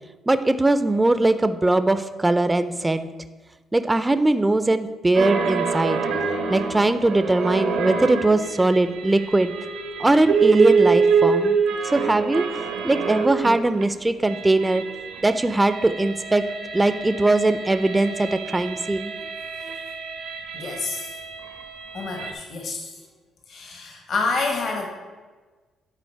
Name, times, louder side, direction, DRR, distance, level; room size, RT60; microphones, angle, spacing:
voice 1, 0.3-3.1 3.7-6.0 6.5-9.5 10.0-11.6 11.8-14.8 15.2-16.4 16.7-19.1, right 2 dB, 15° right, 11 dB, 0.4 m, -20 dB
sound 1, 5.1-13.8 14.1-22.3, right 5 dB, 90° right, 0.9 m, -26 dB
voice 2, 20.5-21.2 21.9-23.0 23.5-24.9, left 3 dB, 60° left, 2 dB, 1.3 m, -28 dB
9.7 x 4.1 x 4.5 m, 1.3 s
cardioid pair, 90°, 0 cm